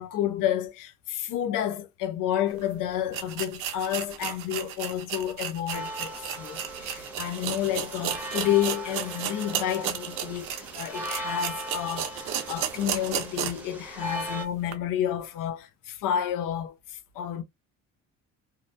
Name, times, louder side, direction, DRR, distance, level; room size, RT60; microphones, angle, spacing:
voice 1, 0.0-17.4, left 11 dB, 75° left, 0.6 m, -30 dB
sound 1, 2.6-2.7 3.1-13.7 14.1-14.2 14.7-14.8, right 10 dB, 80° right, 0.7 m, -34 dB
sound 2, 5.7-14.4, right 1 dB, 5° right, 0.8 m, -38 dB
2.9 x 2.1 x 2.5 m
cardioid pair, 130°, 32 cm